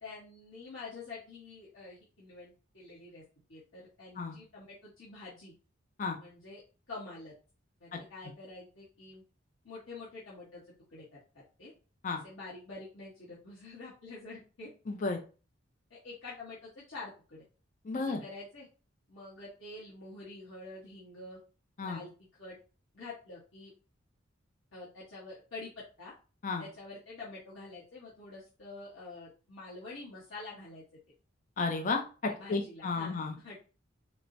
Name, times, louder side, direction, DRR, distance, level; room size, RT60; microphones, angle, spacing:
voice 1, 0.0-3.2 3.5-5.5 6.2-6.6 6.9-7.3 7.8-9.2 9.6-10.6 10.9-11.2 11.6-11.7 12.2-14.7 15.9-17.4 17.9-18.7 19.1-21.4 21.8-22.1 22.4-22.6 22.9-23.7 24.7-25.7 26.0-26.1 26.6-30.8 32.3-33.6, left 3 dB, 90° left, -8 dB, 1.1 m, -47 dB
voice 2, 14.9-15.2 17.8-18.2 21.8-22.0 26.4-26.6 31.6-33.4, left 3 dB, 40° left, 4 dB, 0.4 m, -33 dB
4.4 x 2.0 x 2.6 m, 0.35 s
head